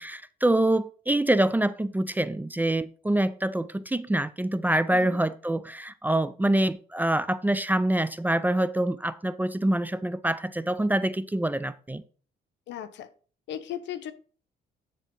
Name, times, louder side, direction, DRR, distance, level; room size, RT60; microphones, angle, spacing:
voice 1, 0.0-12.0, right 1 dB, 10° right, 0.4 m, -25 dB
voice 2, 12.7-13.1 13.5-14.1, left 10 dB, 80° left, 0.9 m, -36 dB
9.8 x 3.5 x 5.2 m
cardioid pair, 90°, 18 cm